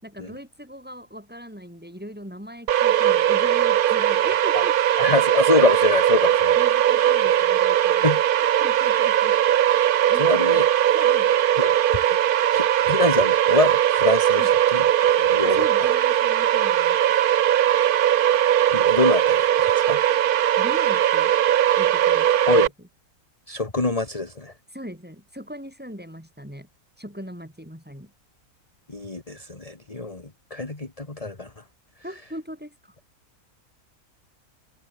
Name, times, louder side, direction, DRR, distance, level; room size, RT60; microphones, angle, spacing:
voice 1, 0.0-4.8 6.6-8.2 8.6-9.4 10.1-10.6 10.9-11.3 14.4-14.5 15.4-17.0 20.6-21.3 21.8-22.7 24.7-26.7 27.0-28.1 32.0-32.9, equal, 5° right, 7.1 m, -39 dB
sound 1, 2.7-22.7, right 11 dB, 75° right, 0.4 m, -19 dB
voice 2, 5.0-6.6 8.0-8.2 10.2-10.6 11.6-11.7 12.5-15.7 18.7-20.0 22.5-22.7 23.5-24.5 28.9-31.6, left 3 dB, 25° left, 2.3 m, -25 dB
omnidirectional pair, 1.5 m